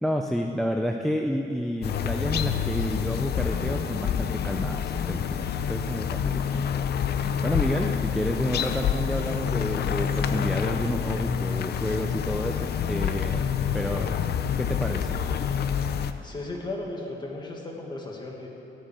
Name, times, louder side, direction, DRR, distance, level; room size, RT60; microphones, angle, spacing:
voice 1, 0.0-6.6 7.4-13.5 13.7-14.3 14.6-15.2, equal, ahead, 3 dB, 0.4 m, -30 dB
sound 1, 1.8-16.1, left 8 dB, 50° left, 0.6 m, -27 dB
voice 2, 16.2-18.5, left 2 dB, 20° left, 0 dB, 1.6 m, -35 dB
14.0 x 6.2 x 10.0 m, 2.9 s
cardioid pair, 180°, 21 cm